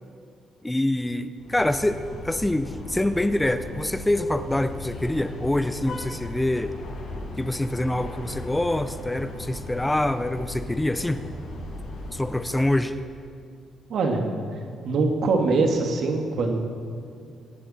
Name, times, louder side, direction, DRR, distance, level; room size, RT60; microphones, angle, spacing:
voice 1, 0.6-6.7 7.4-11.2 12.1-13.0, left 1 dB, 10° left, 11 dB, 0.6 m, -25 dB
sound 1, 1.4-12.6, left 2 dB, 65° left, 4.8 m, -37 dB
voice 2, 13.9-14.3 14.8-16.6, right 3 dB, 65° right, 3 dB, 2.0 m, -23 dB
23.5 x 10.5 x 4.3 m, 2.2 s
cardioid pair, 90°, 0 cm